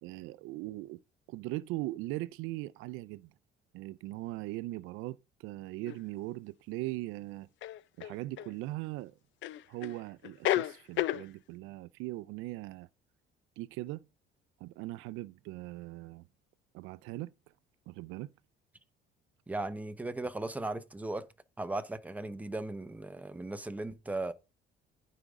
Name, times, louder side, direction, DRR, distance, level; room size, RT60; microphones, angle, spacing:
voice 1, 0.0-1.0 1.3-3.3 3.7-7.5 8.0-9.1 9.7-12.9 13.6-14.0 14.6-16.2 16.7-17.3 17.9-18.3, right 18 dB, 90° right, 0.5 m, -40 dB
sound 1, 5.9-6.0 7.6-8.5 9.4-10.0 10.2-11.2, left 14 dB, 70° left, 0.6 m, -32 dB
voice 2, 19.5-21.3 21.6-24.3, right 2 dB, 5° right, 0.9 m, -37 dB
15.0 x 5.1 x 3.7 m
cardioid pair, 115°, 20 cm